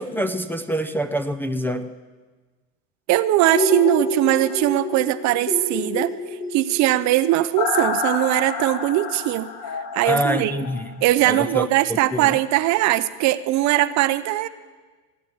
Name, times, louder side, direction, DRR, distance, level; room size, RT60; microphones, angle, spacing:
voice 1, 0.0-1.9 10.0-10.9 11.3-12.3, equal, 5° left, 4 dB, 0.6 m, -25 dB
voice 2, 3.1-6.1 6.5-9.5 9.9-10.6 11.0-14.5, right 15 dB, 45° right, 14 dB, 0.7 m, -20 dB
sound 1, 3.4-11.3 11.7-11.8, left 3 dB, 40° left, 2.1 m, -28 dB
17.0 x 8.9 x 8.5 m, 1.3 s
supercardioid pair, 110°, 41 cm